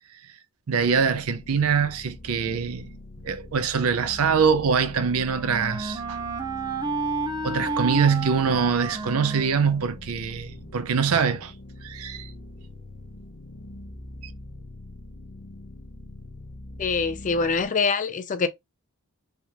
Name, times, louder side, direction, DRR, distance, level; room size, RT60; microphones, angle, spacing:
sound 1, 0.7-17.7, left 1 dB, 75° left, 0.7 m, -43 dB
voice 1, 0.7-2.9 3.2-6.2 7.4-11.5 11.8-12.3, right 6 dB, 75° right, 0.5 m, -24 dB
Wind instrument woodwind instrument, 4.6-10.4, right 3 dB, 20° right, 0.5 m, -32 dB
voice 2, 16.8-18.5, left 4 dB, 35° left, 0.4 m, -24 dB
3.3 x 2.3 x 2.8 m
head